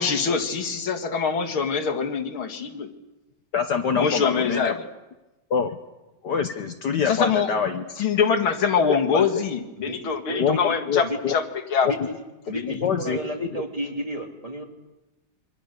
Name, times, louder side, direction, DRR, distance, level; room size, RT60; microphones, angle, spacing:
voice 1, 0.0-2.9 3.9-4.8 7.1-7.5 8.0-11.4 11.7-11.9 12.5-12.7, left 6 dB, 85° left, 3 dB, 2.8 m, -24 dB
voice 2, 3.5-4.7 5.5-5.8 6.2-7.8 8.9-9.2 10.4-10.6 10.9-11.3 12.8-13.2 13.5-13.6, left 6 dB, 60° left, 6 dB, 1.6 m, -25 dB
voice 3, 9.8-10.6 11.0-11.3 11.8-12.1 12.5-14.6, right 1 dB, 15° right, 2 dB, 3.1 m, -32 dB
27.5 x 25.0 x 6.8 m, 1.1 s
omnidirectional pair, 2.2 m